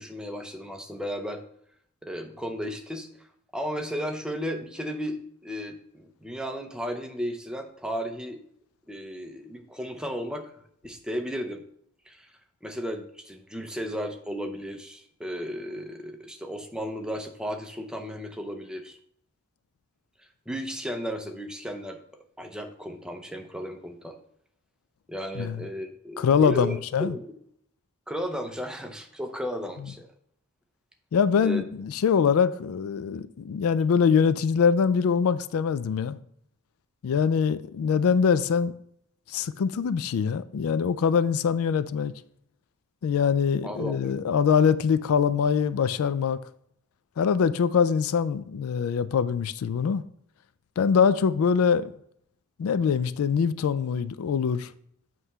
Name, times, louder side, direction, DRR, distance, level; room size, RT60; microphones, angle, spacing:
voice 1, 0.0-1.4 2.0-3.1 3.5-8.4 8.9-10.5 10.8-11.6 12.1-12.3 12.6-19.0 20.5-22.0 22.4-24.2 25.1-27.3 28.1-30.1 31.4-31.6 43.6-44.1, equal, 5° right, 0.6 m, -34 dB
voice 2, 25.3-25.7 26.2-27.2 31.1-36.2 37.0-38.7 39.3-42.1 43.0-46.4 47.2-50.0 50.8-51.9 52.6-54.7, left 6 dB, 80° left, 0.3 m, -23 dB
7.8 x 3.1 x 5.5 m
head